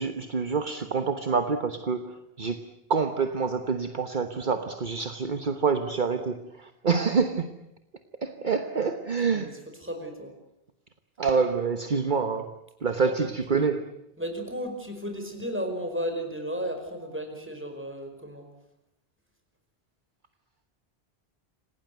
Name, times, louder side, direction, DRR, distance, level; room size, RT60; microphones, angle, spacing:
voice 1, 0.0-2.6 2.9-7.6 8.2-9.5 11.2-14.0, right 5 dB, 50° right, 8 dB, 1.3 m, -27 dB
voice 2, 9.8-10.3 13.0-13.1 14.2-18.5, equal, 10° right, 5 dB, 5.0 m, -34 dB
27.5 x 18.0 x 9.3 m, 0.85 s
omnidirectional pair, 1.1 m